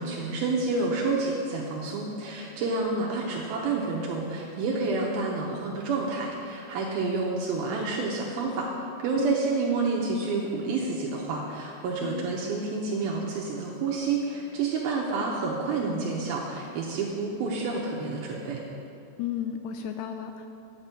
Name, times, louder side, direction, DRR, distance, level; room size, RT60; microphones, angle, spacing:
voice 1, 0.0-8.7 9.0-18.6, right 3 dB, 75° right, -2 dB, 2.4 m, -29 dB
voice 2, 12.0-12.3 19.2-20.5, left 9 dB, 85° left, 6 dB, 2.5 m, -33 dB
8.9 x 6.0 x 8.1 m, 2.6 s
omnidirectional pair, 5.0 m